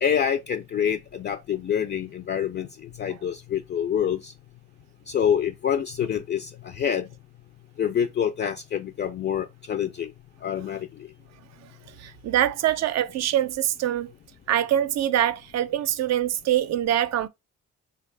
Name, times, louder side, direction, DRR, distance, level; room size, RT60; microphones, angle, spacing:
voice 1, 0.0-4.3 5.1-7.1 7.8-10.1 10.4-10.9, left 8 dB, 35° left, 0.4 m, -26 dB
voice 2, 12.0-14.1 14.5-17.3, right 11 dB, 60° right, 0.5 m, -24 dB
3.3 x 2.4 x 3.2 m
cardioid pair, 90°, 30 cm